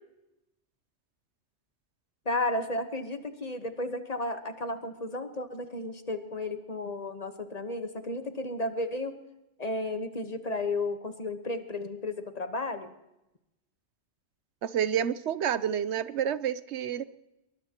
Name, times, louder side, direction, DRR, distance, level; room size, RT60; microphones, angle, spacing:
voice 1, 2.2-9.2 9.6-12.9, left 2 dB, 35° left, 8 dB, 1.2 m, -33 dB
voice 2, 14.6-17.1, right 9 dB, 85° right, 15 dB, 1.0 m, -29 dB
22.5 x 20.5 x 2.9 m, 0.92 s
omnidirectional pair, 1.1 m